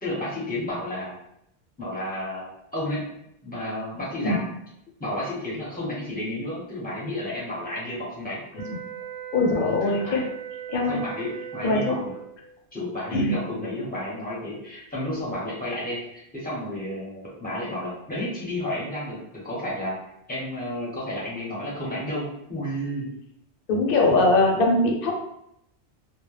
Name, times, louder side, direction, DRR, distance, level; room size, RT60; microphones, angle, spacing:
voice 1, 0.0-1.1 1.8-3.1 3.4-4.5 5.0-8.4 9.4-10.2 10.9-12.1 12.7-23.1 24.0-24.3, left 1 dB, 10° left, -6 dB, 0.6 m, -32 dB
sound 1, 8.5-12.4, right 9 dB, 55° right, 0.4 m, -38 dB
voice 2, 9.3-10.2 10.7-11.0 11.6-12.0 13.1-13.3 23.7-25.2, left 2 dB, 60° left, 0 dB, 0.7 m, -21 dB
2.2 x 2.0 x 3.1 m, 0.79 s
omnidirectional pair, 1.1 m